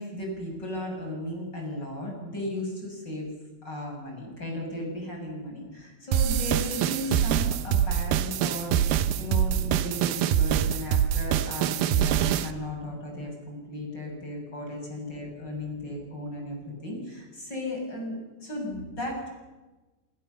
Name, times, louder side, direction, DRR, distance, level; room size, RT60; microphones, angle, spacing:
voice 1, 0.0-3.3 3.6-19.3, left 1 dB, 20° left, 0 dB, 7.4 m, -35 dB
sound 1, 6.1-12.5, right 10 dB, 80° right, 2.2 m, -25 dB
26.5 x 25.0 x 7.1 m, 1.2 s
omnidirectional pair, 5.6 m